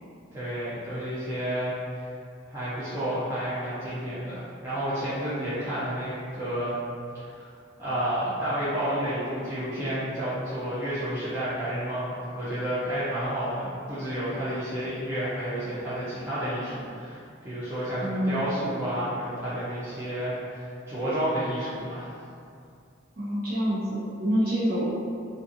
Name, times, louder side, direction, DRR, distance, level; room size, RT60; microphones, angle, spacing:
voice 1, 0.3-1.7 2.5-6.7 7.1-7.5 7.8-22.1, equal, 15° right, -14 dB, 0.5 m, -30 dB
voice 2, 18.0-18.5 23.2-24.8, equal, 45° right, -11 dB, 1.0 m, -27 dB
2.6 x 2.5 x 2.5 m, 2.4 s
head